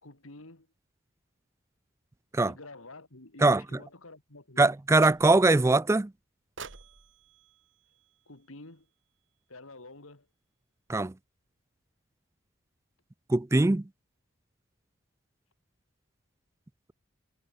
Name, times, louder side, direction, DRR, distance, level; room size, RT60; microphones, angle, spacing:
voice 1, 0.0-0.7 2.4-4.7 8.3-8.9 9.5-10.3, left 2 dB, 85° left, 3.1 m, -49 dB
voice 2, 4.6-6.1 10.9-11.1 13.3-13.8, right 2 dB, 15° right, 0.3 m, -22 dB
sound 1, 5.0-5.6 6.6-8.8, right 5 dB, 60° right, 1.8 m, -49 dB
head